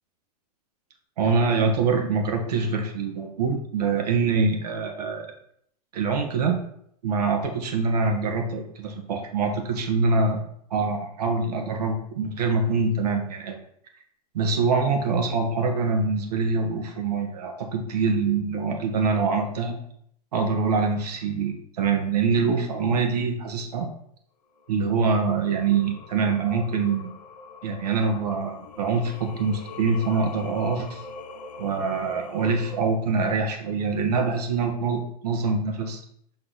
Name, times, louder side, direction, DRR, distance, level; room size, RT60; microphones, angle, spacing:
voice 1, 1.2-5.3 5.9-6.6 7.0-10.4 10.7-13.6 14.3-19.8 20.3-23.9 24.7-27.1 27.6-31.0 31.6-36.0, right 4 dB, 75° right, 3 dB, 1.6 m, -24 dB
Singing, 24.6-32.8, left 3 dB, 80° left, 0.8 m, -43 dB
6.3 x 4.1 x 4.1 m, 0.69 s
hypercardioid pair, 110°, 20 cm